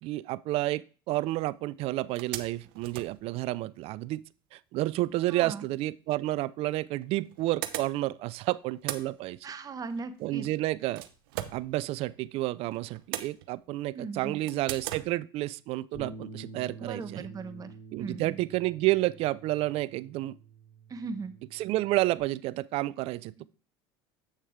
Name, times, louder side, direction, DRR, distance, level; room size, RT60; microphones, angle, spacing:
voice 1, 0.0-4.2 4.5-9.4 10.2-11.1 11.5-17.3 17.9-20.4 21.5-23.5, right 17 dB, 55° right, 0.4 m, -30 dB
sound 1, 1.4-1.5 1.8-4.0 6.0-6.1 7.0-8.3 8.6-12.3 12.7-13.9 14.5-15.1, right 13 dB, 75° right, 0.8 m, -40 dB
voice 2, 5.3-5.6 9.4-10.5 13.9-14.4 16.8-18.4 20.9-21.3, right 4 dB, 30° right, 1.0 m, -38 dB
Bass guitar, 15.9-22.2, right 3 dB, 80° left, 3.3 m, -48 dB
8.0 x 6.4 x 3.5 m
hypercardioid pair, 90°, 12 cm